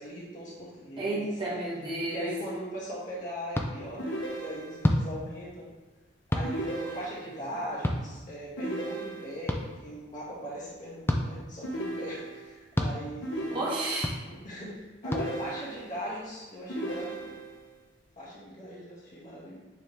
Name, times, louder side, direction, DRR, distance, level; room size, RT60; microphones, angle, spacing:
voice 1, 0.0-1.2 2.1-5.7 6.3-13.6 14.2-17.4 18.2-19.6, equal, 40° left, -8 dB, 2.1 m, -40 dB
voice 2, 1.0-2.3 13.5-14.1 18.6-18.8, right 2 dB, 25° right, -7 dB, 1.7 m, -32 dB
sound 1, 3.5-3.7 4.8-5.0 6.3-6.5 7.8-8.0 9.5-9.6 11.0-11.2 12.7-12.9 14.0-14.2 15.1-15.2, left 1 dB, 10° left, 0.4 m, -26 dB
sound 2, 4.0-5.0 6.4-7.5 8.6-9.6 11.6-12.6 13.2-14.2 15.0-16.1 16.7-17.7, right 1 dB, 80° left, 1.0 m, -36 dB
8.8 x 3.6 x 3.5 m, 1.3 s
head